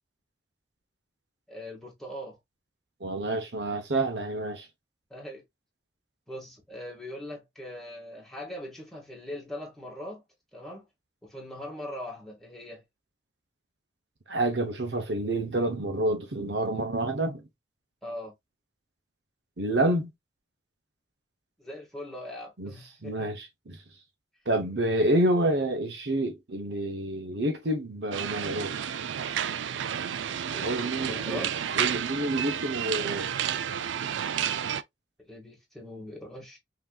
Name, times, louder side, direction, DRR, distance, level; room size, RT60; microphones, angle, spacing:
voice 1, 1.5-2.4 5.1-5.4 6.3-10.2 10.5-10.8 11.2-12.8 18.0-18.3 21.6-23.3 30.5-31.7 35.2-36.6, left 1 dB, ahead, 1.7 m, -41 dB
voice 2, 3.0-4.7 14.3-17.4 19.6-20.1 22.6-22.7 23.0-23.8 24.5-28.9 30.6-31.5 31.7-33.3, right 1 dB, 70° right, 0.9 m, -28 dB
sound 1, 28.1-34.8, right 8 dB, 90° right, 0.4 m, -31 dB
5.8 x 2.9 x 2.3 m
head